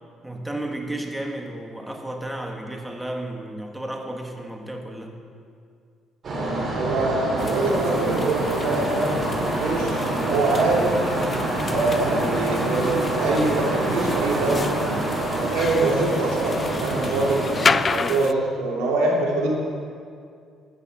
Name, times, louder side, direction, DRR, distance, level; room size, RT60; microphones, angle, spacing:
voice 1, 0.2-5.2, right 1 dB, 10° right, 3 dB, 1.6 m, -33 dB
sound 1, 6.2-17.8, right 1 dB, 45° right, 2.9 m, -26 dB
voice 2, 6.7-11.0 11.7-14.9 15.2-17.4 17.9-19.5, right 2 dB, 90° right, -2 dB, 2.4 m, -24 dB
sound 2, 7.4-18.3, left 4 dB, 35° left, 0.4 m, -31 dB
11.5 x 8.4 x 5.7 m, 2.3 s
supercardioid pair, 80°, 0 cm